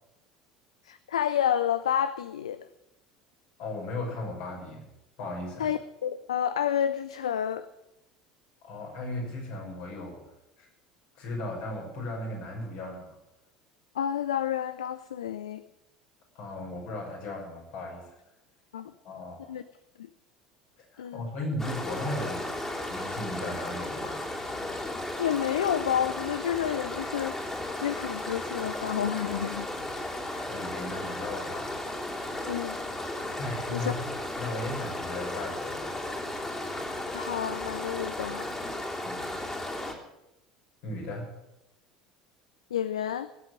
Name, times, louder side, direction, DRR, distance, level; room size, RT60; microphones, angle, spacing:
voice 1, 0.9-2.6 5.6-7.7 13.9-15.6 18.7-18.9 19.5-19.6 20.0-20.1 21.0-21.3 25.2-27.4 27.8-29.7 30.3-30.5 32.5-32.8 33.7-33.9 37.1-38.4 42.7-43.3, left 9 dB, 75° left, 13 dB, 0.5 m, -29 dB
voice 2, 3.6-4.8 5.2-5.7 8.6-10.3 10.6-10.7 11.2-13.2 16.3-18.2 19.0-19.6 20.8-22.6 22.9-24.2 30.0-31.7 33.4-34.0 34.4-36.0 39.0-39.4 40.8-41.3, left 1 dB, 60° left, -1 dB, 6.2 m, -36 dB
sound 1, 21.6-39.9, left 1 dB, 15° left, 3.4 m, -35 dB
17.5 x 8.3 x 8.9 m, 0.91 s
figure-of-eight pair, 65°, 3 cm